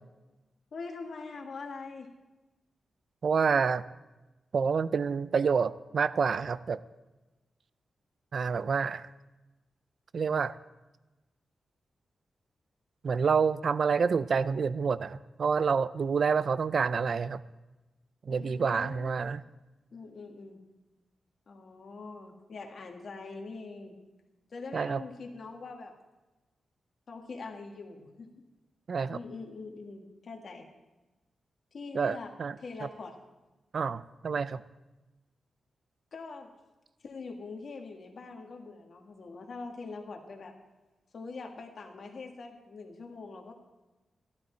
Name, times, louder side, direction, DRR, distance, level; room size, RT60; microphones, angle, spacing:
voice 1, 0.7-2.1 18.3-19.3 19.9-20.6 21.5-23.9 24.5-26.0 27.1-28.4 29.1-30.7 31.7-32.3 32.6-33.2 36.1-36.5 37.0-40.5 41.1-43.5, left 4 dB, 50° left, 2 dB, 1.7 m, -43 dB
voice 2, 3.2-3.8 4.5-6.8 8.3-9.1 10.1-10.5 13.0-17.4 18.3-19.4 24.7-25.0 28.9-29.2 31.9-32.6 32.8-32.9 33.7-34.6, right 5 dB, 50° right, 16 dB, 0.4 m, -28 dB
15.0 x 12.0 x 4.5 m, 1.1 s
wide cardioid pair, 170°, 0 cm